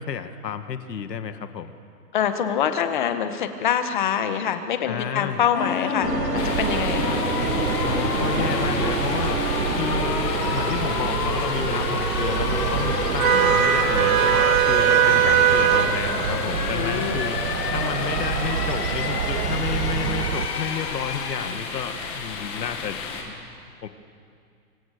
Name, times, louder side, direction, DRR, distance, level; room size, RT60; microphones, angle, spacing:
voice 1, 0.0-1.7 4.8-5.4 7.8-9.4 9.7-17.4 17.7-23.0 23.3-23.6 23.8-23.9, left 7 dB, 90° left, 8 dB, 1.9 m, -31 dB
voice 2, 2.1-7.2 13.3-13.6 16.7-17.2, left 8 dB, 30° left, 8 dB, 1.5 m, -25 dB
sound 1, 5.5-21.5, left 6 dB, 70° left, 3.2 m, -29 dB
sound 2, 6.0-20.5, right 9 dB, 55° right, 1.2 m, -24 dB
sound 3, 6.4-23.2, left 5 dB, 10° left, 1.5 m, -33 dB
28.5 x 25.5 x 6.7 m, 2.3 s
hypercardioid pair, 175°, 48 cm